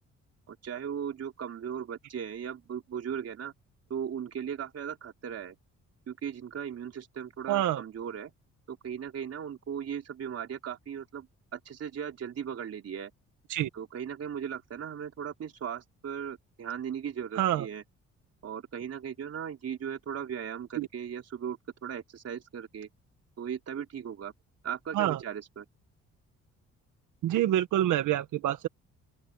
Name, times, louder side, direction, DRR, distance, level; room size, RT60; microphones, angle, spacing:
voice 1, 0.5-3.5 3.9-5.6 6.1-8.3 8.7-11.3 11.5-13.1 13.7-17.8 18.4-22.9 23.4-24.3 24.6-25.7, right 8 dB, 55° right, 3.7 m, -37 dB
voice 2, 7.5-7.8 13.5-13.7 17.3-17.7 20.8-20.9 24.9-25.2 27.2-28.7, right 13 dB, 80° right, 1.5 m, -26 dB
open air
cardioid pair, 90°, 30 cm